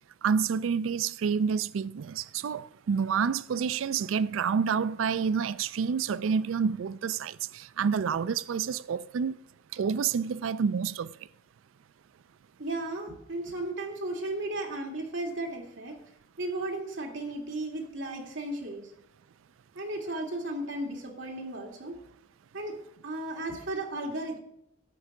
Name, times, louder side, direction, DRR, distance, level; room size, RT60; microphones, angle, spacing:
voice 1, 0.2-9.4 9.7-11.1, right 6 dB, 85° right, 0.4 m, -28 dB
voice 2, 12.6-16.0 16.4-18.8 19.7-22.0 22.5-22.7 23.0-24.4, right 2 dB, 70° right, 2.6 m, -35 dB
11.5 x 8.0 x 5.0 m
head